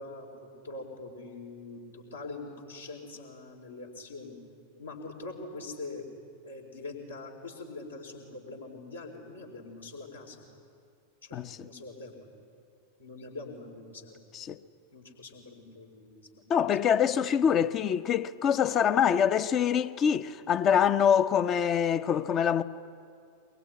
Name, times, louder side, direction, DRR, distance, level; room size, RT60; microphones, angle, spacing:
voice 1, 0.0-4.4 4.8-6.1 6.4-10.5 11.2-12.3 13.0-14.2 14.9-16.4, left 3 dB, 75° left, 4.3 m, -43 dB
voice 2, 11.3-11.7 14.3-14.6 16.5-22.6, left 8 dB, 30° left, 0.8 m, -25 dB
23.5 x 21.5 x 9.6 m
figure-of-eight pair, 90°, 0 cm